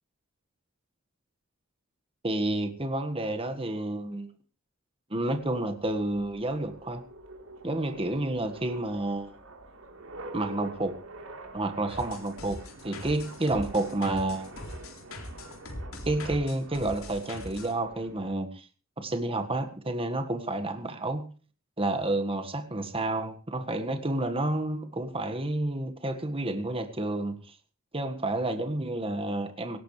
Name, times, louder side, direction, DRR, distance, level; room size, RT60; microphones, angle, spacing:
voice 1, 2.2-4.3 5.1-7.0 7.6-9.3 10.3-11.0 11.5-14.5 16.0-18.7 19.0-21.3 21.8-27.5 27.9-29.8, right 2 dB, 25° right, 7 dB, 1.7 m, -30 dB
sound 1, 5.3-18.3, right 2 dB, 75° right, 3.8 m, -47 dB
sound 2, 11.9-17.7, left 1 dB, 75° left, 3.9 m, -41 dB
17.5 x 17.5 x 3.3 m, 0.37 s
head